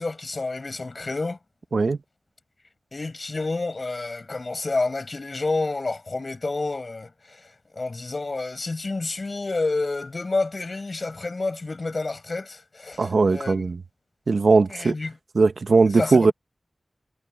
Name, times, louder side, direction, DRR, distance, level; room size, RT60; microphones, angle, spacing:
voice 1, 0.0-1.4 2.9-13.7 14.7-15.1 15.9-16.3, left 3 dB, 50° left, 7.1 m, -29 dB
voice 2, 13.0-13.8 14.3-14.9 15.3-16.3, right 4 dB, 70° right, 1.2 m, -19 dB
wide cardioid pair, 95°, 0 cm